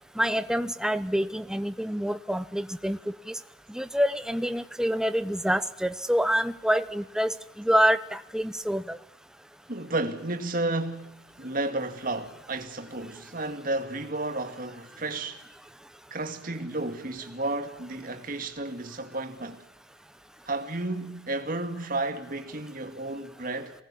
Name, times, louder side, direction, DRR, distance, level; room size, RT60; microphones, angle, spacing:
voice 1, 0.2-3.0 3.7-9.0, equal, 5° right, 0.8 m, -26 dB
voice 2, 9.7-15.4 16.1-19.6 20.5-23.7, right 2 dB, 45° right, 2.3 m, -32 dB
24.5 x 19.0 x 8.5 m
head